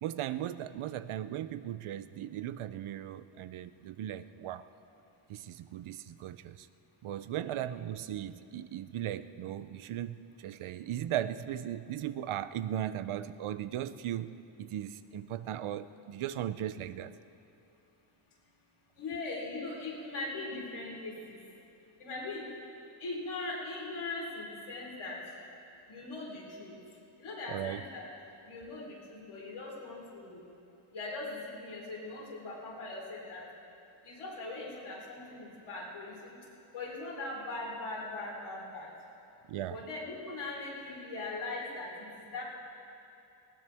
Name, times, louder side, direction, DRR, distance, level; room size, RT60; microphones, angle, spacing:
voice 1, 0.0-4.6 5.3-6.7 7.0-17.1 27.5-27.8 39.5-39.8, right 11 dB, 90° right, 13 dB, 0.6 m, -37 dB
voice 2, 19.0-21.4 22.0-22.5 23.0-25.2 25.9-26.8 27.2-28.1 28.5-30.4 30.9-33.4 34.0-36.4 36.7-38.9 39.7-42.4, left 2 dB, 85° left, -4 dB, 4.0 m, -40 dB
19.5 x 18.0 x 3.5 m, 2.8 s
wide cardioid pair, 140°, 48 cm